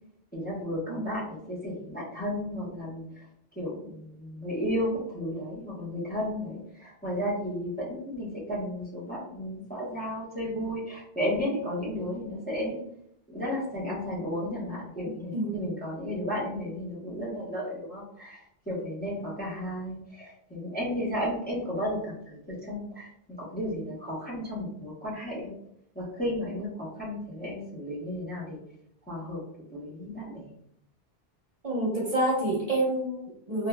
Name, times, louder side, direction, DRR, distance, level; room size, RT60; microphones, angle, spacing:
voice 1, 0.3-3.2 3.5-12.8 13.3-25.5 25.9-28.6 29.1-29.4 29.7-30.5, equal, 10° left, -7 dB, 0.7 m, -33 dB
voice 2, 15.0-15.6 31.6-33.7, right 1 dB, 40° right, -5 dB, 0.9 m, -28 dB
3.0 x 2.4 x 2.2 m, 0.73 s
omnidirectional pair, 1.1 m